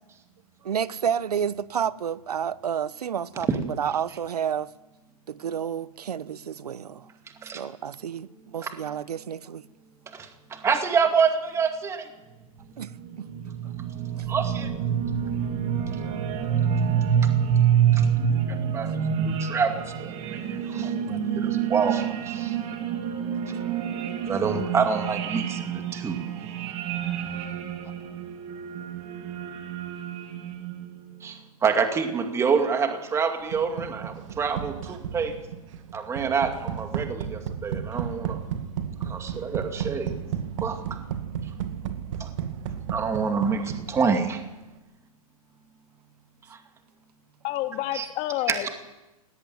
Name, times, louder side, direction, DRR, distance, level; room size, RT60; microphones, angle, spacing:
voice 1, 0.6-3.5 3.8-4.7 5.3-7.0 7.5-9.6 12.8-12.9 13.2-13.3, right 8 dB, 80° right, 1.1 m, -30 dB
voice 2, 10.1-12.1 14.3-14.7 17.9-18.1 18.5-22.6 24.3-26.2 31.2-35.3 35.9-38.4 39.0-40.1 40.6-40.8 42.2-42.3 42.9-44.4 46.5-46.6 47.9-48.1 48.5-48.7, right 5 dB, 15° right, 2.3 m, -27 dB
sound 1, 12.6-31.0, right 8 dB, 35° right, 3.0 m, -27 dB
sound 2, 33.5-44.4, right 8 dB, 55° right, 2.3 m, -34 dB
voice 3, 47.4-48.7, left 14 dB, 30° left, 2.1 m, -29 dB
19.0 x 18.0 x 9.4 m
hypercardioid pair, 135°, 20 cm